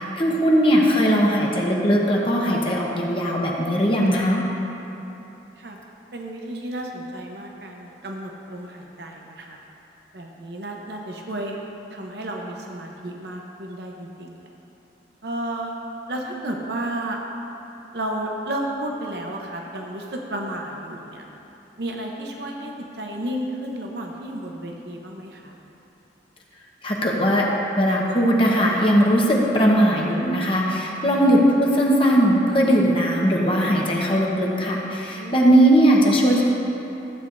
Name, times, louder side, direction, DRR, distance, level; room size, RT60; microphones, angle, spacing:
voice 1, 0.0-4.4 26.8-27.5 27.8-36.4, equal, 30° left, -3 dB, 1.1 m, -19 dB
voice 2, 6.1-9.6 10.1-11.6 11.9-14.5 15.2-15.8 16.1-17.2 17.9-21.3 21.8-25.5 31.0-31.2 35.1-35.5, right 1 dB, 65° right, 1 dB, 0.9 m, -32 dB
15.0 x 8.7 x 2.6 m, 3.0 s
head